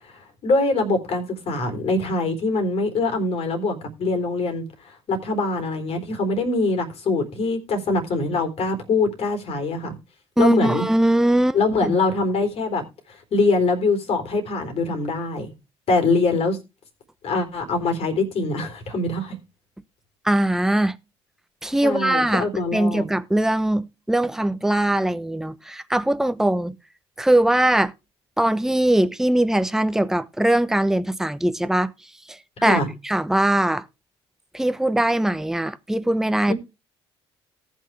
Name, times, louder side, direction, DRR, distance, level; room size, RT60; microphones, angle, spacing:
voice 1, 0.4-4.6 5.1-9.9 10.4-10.8 11.5-12.8 13.3-15.5 15.9-16.6 17.2-19.4 21.8-23.0 32.6-32.9 36.5-36.6, left 3 dB, 45° left, 3.9 m, -23 dB
voice 2, 10.4-11.6 11.8-11.9 20.2-21.0 21.6-22.5 22.7-26.7 27.2-27.9 28.4-31.9 32.3-33.8 34.5-36.5, right 1 dB, 5° right, 0.9 m, -21 dB
18.5 x 6.4 x 3.4 m
figure-of-eight pair, 55°, 14 cm